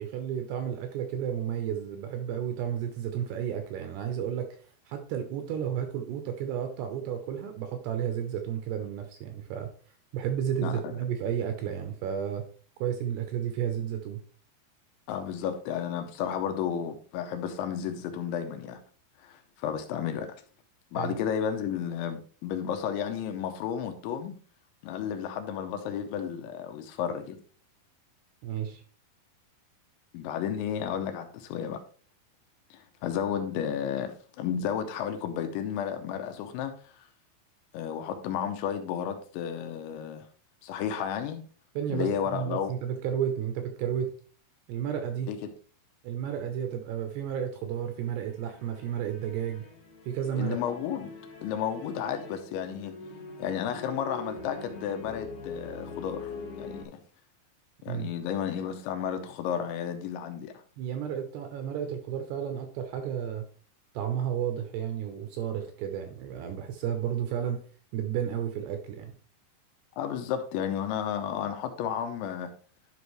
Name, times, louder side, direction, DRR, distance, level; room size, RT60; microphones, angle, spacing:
voice 1, 0.0-4.5 4.9-9.7 10.1-12.5 12.8-14.2 20.9-21.2 28.4-28.8 41.8-44.1 44.7-45.3 46.0-49.6 50.1-50.6 57.9-58.1 60.8-63.4 63.9-67.6 67.9-69.1, right 9 dB, 80° right, 6 dB, 2.5 m, -32 dB
voice 2, 10.6-10.9 15.1-18.8 19.2-20.4 20.9-24.4 24.8-27.4 30.1-31.8 32.7-36.9 37.7-40.3 40.6-41.4 41.9-42.7 45.3-45.5 50.4-51.1 51.4-53.0 53.4-56.3 56.6-57.0 57.8-60.5 70.0-72.5, left 8 dB, 85° left, 7 dB, 3.1 m, -32 dB
sound 1, 47.8-56.8, left 3 dB, 60° left, 2.1 m, -44 dB
11.5 x 5.2 x 3.1 m, 0.42 s
omnidirectional pair, 5.5 m